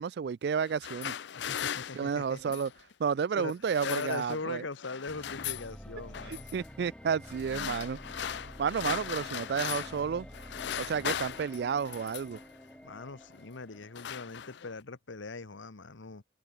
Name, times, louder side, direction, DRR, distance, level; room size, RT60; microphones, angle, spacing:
voice 1, 0.0-1.1 1.9-2.7 3.0-4.6 6.3-10.3 10.8-12.4, right 6 dB, 60° right, 0.3 m, -31 dB
sound 1, 0.6-2.8 3.5-4.5 4.8-5.7 6.1-6.5 7.2-10.1 10.3-12.4 13.2-13.4 13.7-14.8, left 9 dB, 65° left, 0.5 m, -38 dB
voice 2, 1.3-2.6 3.3-3.5 3.8-6.5 12.8-16.2, left 3 dB, 85° left, 1.2 m, -40 dB
sound 2, 5.1-14.1, equal, 5° left, 2.0 m, -49 dB
head